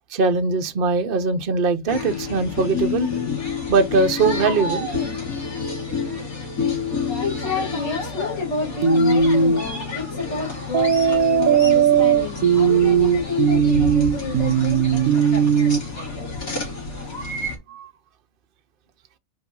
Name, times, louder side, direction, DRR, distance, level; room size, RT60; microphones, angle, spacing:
voice 1, 0.1-3.1 3.7-4.9 17.7-17.9, right 4 dB, 45° right, 1.0 m, -21 dB
sound 1, 1.9-17.6, left 4 dB, 80° left, 3.2 m, -29 dB
voice 2, 6.8-14.8, left 4 dB, 60° left, 2.8 m, -29 dB
sound 2, 8.8-9.6 10.7-15.8, right 7 dB, 80° right, 1.2 m, -17 dB
5.0 x 4.9 x 5.4 m
omnidirectional pair, 1.5 m